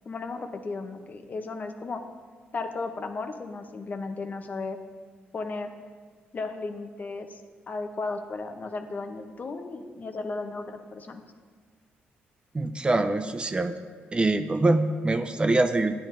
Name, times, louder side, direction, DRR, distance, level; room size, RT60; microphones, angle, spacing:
voice 1, 0.1-2.0 2.5-4.8 5.3-5.7 6.3-7.4 7.7-11.2, left 3 dB, 40° left, 7 dB, 0.7 m, -35 dB
voice 2, 12.5-13.7 14.1-15.9, right 2 dB, 25° right, 9 dB, 0.4 m, -24 dB
10.0 x 9.0 x 2.6 m, 1.5 s
supercardioid pair, 70°, 4 cm